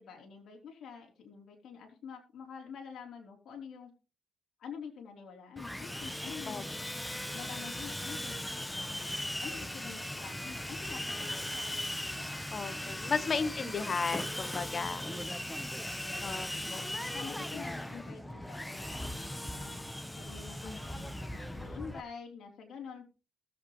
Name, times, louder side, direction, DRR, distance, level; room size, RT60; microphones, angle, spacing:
voice 1, 0.0-3.9 4.6-6.7 7.3-9.1 9.4-11.5 12.0-12.4 12.9-13.6 14.9-15.3 16.0-18.9 19.4-19.8 20.2-23.3, left 6 dB, 60° left, 1 dB, 3.7 m, -47 dB
Sawing, 5.6-22.0, left 1 dB, 5° left, 0.9 m, -38 dB
voice 2, 12.5-15.0 16.2-16.8 20.6-20.8, left 4 dB, 40° left, 13 dB, 1.2 m, -34 dB
19.5 x 7.7 x 3.1 m, 0.32 s
cardioid pair, 90°, 0 cm